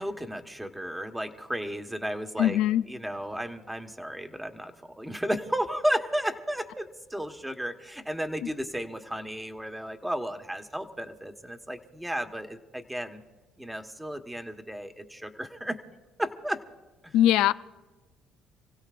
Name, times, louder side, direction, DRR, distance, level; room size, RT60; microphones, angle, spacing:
voice 1, 0.0-2.6 2.9-13.2 13.6-15.8 16.2-16.6 17.0-17.1, equal, 5° right, 6 dB, 1.4 m, -33 dB
voice 2, 2.4-2.8 17.1-17.5, left 12 dB, 80° left, 14 dB, 0.5 m, -21 dB
29.5 x 16.5 x 2.5 m, 1.2 s
supercardioid pair, 75°, 0 cm